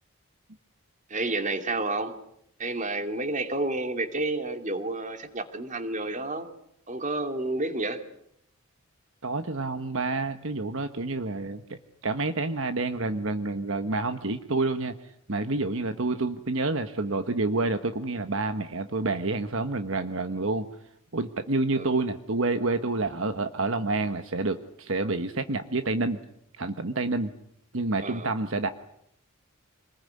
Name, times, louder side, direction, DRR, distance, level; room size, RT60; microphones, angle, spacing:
voice 1, 1.1-2.1 2.6-6.5 6.9-8.0 21.7-21.9 28.0-28.3, right 2 dB, 35° right, 8 dB, 2.5 m, -30 dB
voice 2, 9.2-20.7 21.1-26.2 26.6-27.3 27.7-28.7, right 3 dB, 60° right, 9 dB, 1.3 m, -28 dB
27.0 x 20.5 x 9.7 m, 0.73 s
head